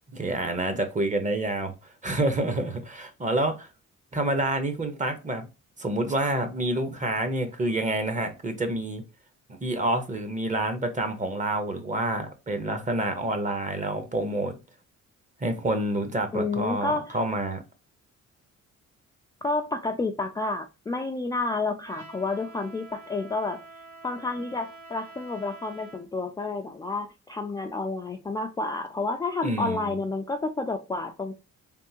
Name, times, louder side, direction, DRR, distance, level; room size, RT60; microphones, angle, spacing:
voice 1, 0.1-1.7 2.0-3.7 4.1-5.5 5.8-9.0 9.5-14.6 15.4-17.6 29.4-29.9, right 1 dB, 25° right, 0.8 m, -28 dB
voice 2, 16.3-17.2 19.4-31.3, left 3 dB, 15° left, 0.3 m, -30 dB
Trumpet, 21.8-26.1, right 3 dB, 75° right, 1.2 m, -47 dB
3.5 x 2.5 x 2.8 m
cardioid pair, 90°, 30 cm